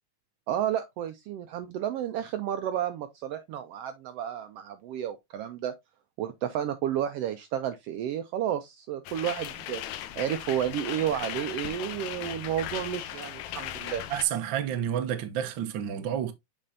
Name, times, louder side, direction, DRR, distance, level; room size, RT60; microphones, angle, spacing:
voice 1, 0.5-5.7 6.2-9.8 10.2-14.0, right 10 dB, 85° right, 1.4 m, -31 dB
sound 1, 9.1-14.2, left 12 dB, 80° left, 2.0 m, -37 dB
voice 2, 14.1-16.3, right 10 dB, 70° right, 1.1 m, -30 dB
7.5 x 5.4 x 2.7 m
omnidirectional pair, 3.4 m